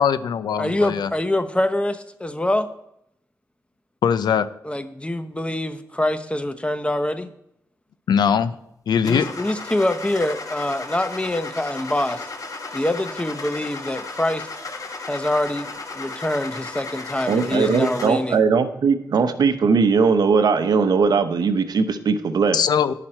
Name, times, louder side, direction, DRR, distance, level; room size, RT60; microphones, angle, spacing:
voice 1, 0.0-1.1 4.0-4.5 8.1-8.6 8.9-9.3 22.5-22.9, left 7 dB, 80° left, 14 dB, 0.5 m, -20 dB
voice 2, 0.6-2.7 4.6-7.3 9.0-12.2 12.7-14.5 15.1-18.4, left 1 dB, 15° left, 10 dB, 1.0 m, -25 dB
Car / Engine starting, 9.1-18.3, left 3 dB, 55° left, 1.5 m, -35 dB
voice 3, 17.3-22.6, right 5 dB, 70° right, 10 dB, 0.8 m, -19 dB
11.0 x 5.9 x 4.4 m, 0.78 s
supercardioid pair, 45°, 7 cm